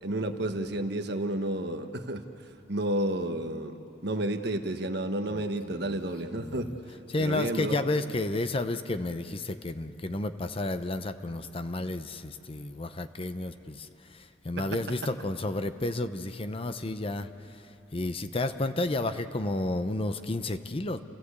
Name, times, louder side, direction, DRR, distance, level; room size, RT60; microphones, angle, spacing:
voice 1, 0.0-2.2 2.7-3.8 4.0-6.7 7.2-7.8 14.6-14.8, right 1 dB, 65° right, 6 dB, 1.3 m, -31 dB
voice 2, 6.3-6.8 7.1-17.3 17.9-21.0, left 2 dB, 30° left, 10 dB, 0.8 m, -31 dB
30.0 x 15.5 x 8.3 m, 2.8 s
head